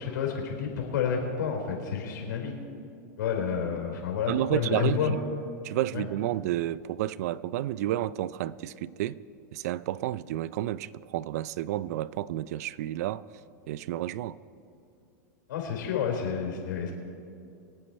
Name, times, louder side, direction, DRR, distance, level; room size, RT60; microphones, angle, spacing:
voice 1, 0.0-2.6 3.2-5.1 5.9-6.0 15.5-16.9, left 7 dB, 85° left, 4.2 m, -30 dB
voice 2, 4.3-5.2 5.6-9.2 9.5-13.3 13.7-14.4, right 13 dB, 55° right, 0.4 m, -31 dB
24.0 x 8.8 x 4.5 m
supercardioid pair, 160°, 10 cm